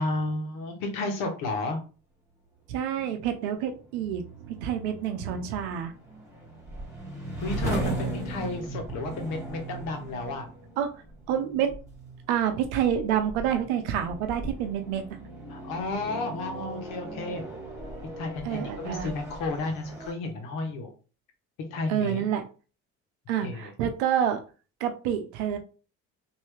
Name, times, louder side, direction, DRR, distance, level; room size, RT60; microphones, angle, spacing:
voice 1, 0.0-1.8 5.3-5.5 7.4-10.5 15.5-17.4 18.2-20.9 21.7-22.2 23.4-23.7, left 2 dB, 75° left, 4 dB, 1.1 m, -32 dB
voice 2, 2.7-5.9 10.8-10.9 11.3-11.8 12.3-15.2 18.4-19.1 21.9-22.4 23.3-24.4 24.8-25.6, right 9 dB, 90° right, 7 dB, 0.7 m, -28 dB
sound 1, 3.2-20.1, right 2 dB, 10° right, 1.9 m, -38 dB
3.2 x 2.7 x 3.3 m, 0.36 s
supercardioid pair, 75°, 33 cm